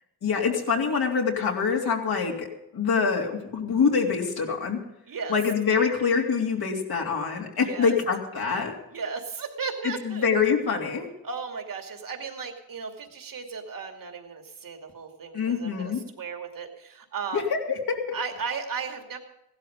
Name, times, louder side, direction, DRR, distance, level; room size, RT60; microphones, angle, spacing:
voice 1, 0.2-4.8 5.3-8.7 9.8-11.1 15.3-16.0 17.3-18.2, left 5 dB, 70° left, 0 dB, 3.2 m, -25 dB
voice 2, 5.1-5.4 7.6-7.9 8.9-10.3 11.2-17.4 18.1-19.2, right 5 dB, 55° right, 3 dB, 2.6 m, -35 dB
16.5 x 12.0 x 5.2 m, 0.86 s
cardioid pair, 75°, 39 cm